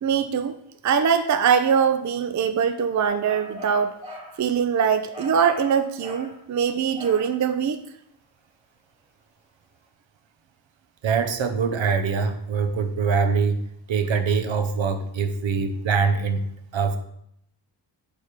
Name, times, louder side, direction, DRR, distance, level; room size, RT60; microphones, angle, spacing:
voice 1, 0.0-0.6 0.8-3.9 4.4-7.8, right 7 dB, 40° right, 9 dB, 0.4 m, -22 dB
sound 1, 3.0-4.4 5.1-6.4 7.0-7.4, equal, 10° right, 1.9 m, -40 dB
voice 2, 11.0-16.5 16.7-17.0, right 5 dB, 65° right, 8 dB, 0.8 m, -23 dB
8.7 x 3.4 x 5.0 m, 0.74 s
wide cardioid pair, 105°, 48 cm